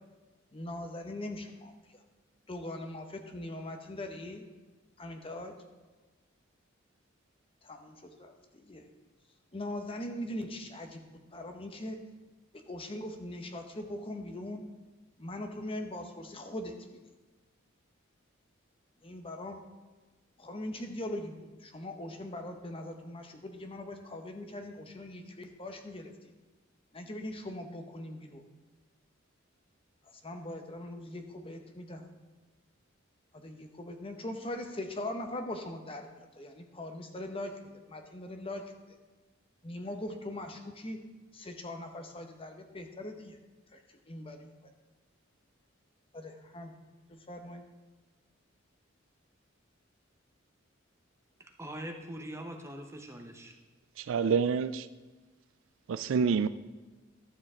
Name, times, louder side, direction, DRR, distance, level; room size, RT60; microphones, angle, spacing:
voice 1, 0.5-2.0 2.5-4.4 5.0-5.5 7.6-8.8 9.5-11.0 11.3-12.0 12.5-14.6 15.2-17.0 19.0-19.6 20.4-26.1 26.9-28.4 30.0-32.1 33.3-38.6 39.6-41.0 41.3-43.4 43.7-44.7 46.1-46.7 47.1-47.6, left 1 dB, 30° left, 5 dB, 0.9 m, -41 dB
voice 2, 51.4-53.6, right 1 dB, 15° right, 3 dB, 0.9 m, -42 dB
voice 3, 54.0-54.9 55.9-56.5, right 6 dB, 70° right, 14 dB, 0.3 m, -27 dB
12.0 x 7.1 x 3.7 m, 1.2 s
head